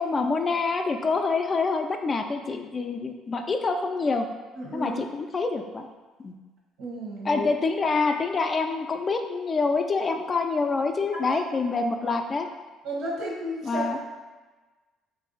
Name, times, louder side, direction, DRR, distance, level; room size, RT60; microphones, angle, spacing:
voice 1, 0.0-4.2 4.7-5.9 6.2-6.3 7.2-12.5 13.6-14.0, left 4 dB, 35° left, 5 dB, 0.3 m, -26 dB
voice 2, 4.6-4.9 6.8-7.4 11.3-11.4 12.8-13.9, right 1 dB, 75° right, -4 dB, 1.0 m, -32 dB
2.6 x 2.3 x 3.8 m, 1.3 s
hypercardioid pair, 60°, 0 cm